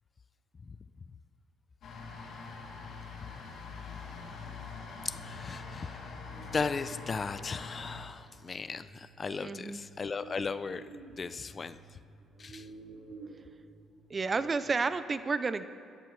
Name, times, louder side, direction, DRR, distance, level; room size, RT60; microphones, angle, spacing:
sound 1, 1.8-8.0, left 4 dB, 65° left, 3.0 m, -44 dB
voice 1, 5.0-6.1 6.5-10.9 11.2-11.8 12.4-12.7, left 4 dB, 35° left, 13 dB, 0.5 m, -36 dB
sound 2, 6.3-15.0, right 4 dB, 65° right, 2.6 m, -53 dB
voice 2, 9.4-9.8 14.1-15.6, right 4 dB, 30° right, 13 dB, 0.6 m, -31 dB
21.5 x 14.0 x 3.3 m, 2.3 s
cardioid pair, 100°, 0 cm